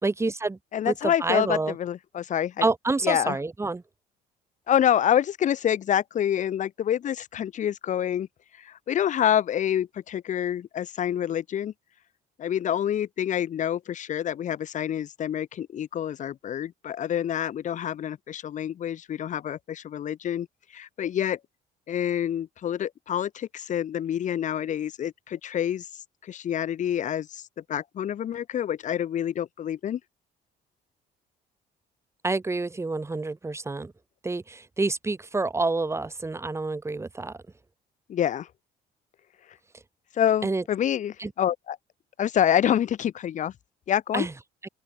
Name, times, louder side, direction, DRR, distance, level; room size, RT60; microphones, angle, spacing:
voice 1, 0.0-0.6 0.9-1.7 2.6-3.8 32.2-33.9 34.2-37.4 40.4-40.6 41.2-41.3 44.1-44.3, right 3 dB, 15° right, 2.7 m, -28 dB
voice 2, 0.7-2.6 3.0-3.4 4.7-8.3 8.6-11.7 12.4-20.5 20.7-21.4 21.9-25.9 26.2-27.4 27.7-30.0 38.1-38.5 40.1-41.8 42.2-43.5 43.9-44.3, left 10 dB, 45° left, 0.9 m, -27 dB
cardioid pair, 110°, 17 cm